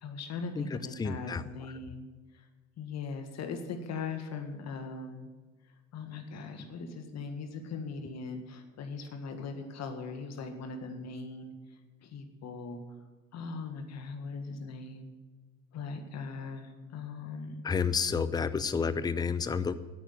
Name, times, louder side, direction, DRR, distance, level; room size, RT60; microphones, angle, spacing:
voice 1, 0.0-2.1 2.3-2.4 2.8-5.3 5.9-11.5 12.0-12.8 13.3-15.1 15.7-17.6, left 4 dB, 40° left, 6 dB, 1.8 m, -40 dB
voice 2, 1.0-1.4 17.6-19.7, left 5 dB, 10° left, 15 dB, 0.5 m, -30 dB
9.8 x 8.8 x 9.4 m, 1.3 s
hypercardioid pair, 70°, 40 cm